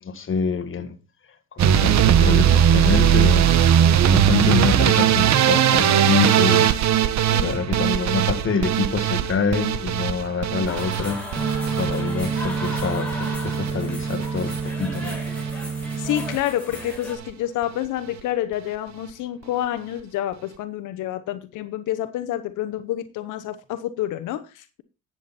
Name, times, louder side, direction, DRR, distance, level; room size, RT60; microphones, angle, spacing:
voice 1, 0.0-1.0 1.5-3.4 4.0-6.7 7.3-11.2 11.8-15.2, left 5 dB, 45° left, 1.7 m, -26 dB
sound 1, 1.6-13.7 14.0-14.6 14.9-15.5 15.8-16.1 16.4-16.5 16.7-16.8, right 9 dB, 65° right, 1.0 m, -19 dB
sound 2, 10.7-17.2, left 1 dB, 5° left, 5.7 m, -36 dB
sound 3, 11.4-16.4, right 5 dB, 20° right, 1.4 m, -28 dB
voice 2, 16.0-24.8, left 12 dB, 90° left, 0.9 m, -28 dB
11.0 x 7.7 x 4.2 m
cardioid pair, 90°, 30 cm